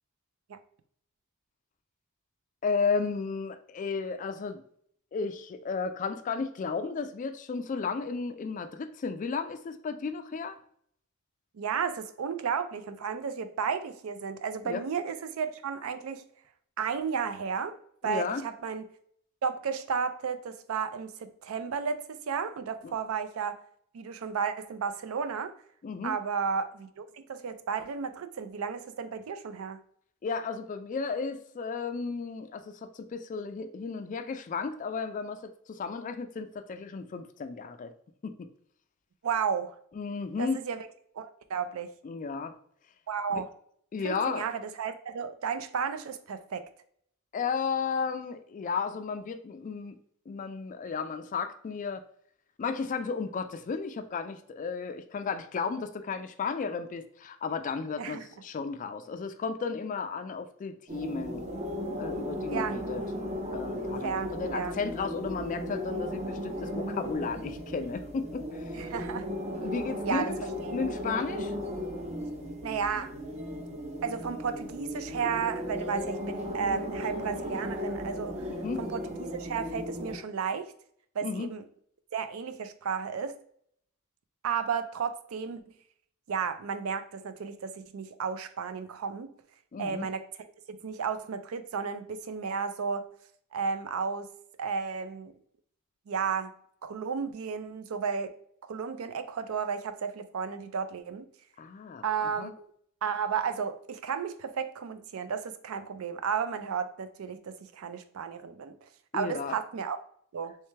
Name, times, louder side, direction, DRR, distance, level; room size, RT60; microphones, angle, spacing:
voice 1, 2.6-4.6 5.1-10.6 14.6-14.8 18.0-18.5 22.8-23.0 25.8-26.2 30.2-37.9 38.2-38.5 39.9-40.6 42.0-42.5 43.3-43.4 43.9-44.5 47.3-50.0 50.3-52.0 52.6-61.4 62.0-63.0 63.5-68.8 69.6-70.4 70.7-71.5 78.6-78.8 81.2-81.5 89.7-90.1 101.6-102.0 102.4-102.5 109.1-109.5, left 5 dB, 35° left, 9 dB, 0.3 m, -34 dB
voice 2, 11.5-16.2 16.8-17.8 18.0-18.8 19.4-23.6 23.9-25.5 26.0-29.8 39.2-39.8 40.4-40.8 41.1-41.9 43.1-43.5 44.0-46.7 58.0-58.2 62.5-62.8 64.0-64.7 68.7-69.3 70.0-70.3 70.7-70.8 72.6-73.1 74.0-78.5 78.8-80.7 81.2-81.6 82.1-83.4 84.4-85.6 86.3-89.3 89.8-90.2 90.7-93.0 93.5-94.3 94.6-95.3 96.1-96.5 96.8-98.3 98.6-101.3 102.0-102.7 103.0-108.8 109.1-110.0 110.3-110.6, right 6 dB, 75° right, 10 dB, 0.4 m, -33 dB
sound 1, 60.9-80.1, equal, 30° right, 0.6 m, -36 dB
3.3 x 3.2 x 3.2 m, 0.66 s
head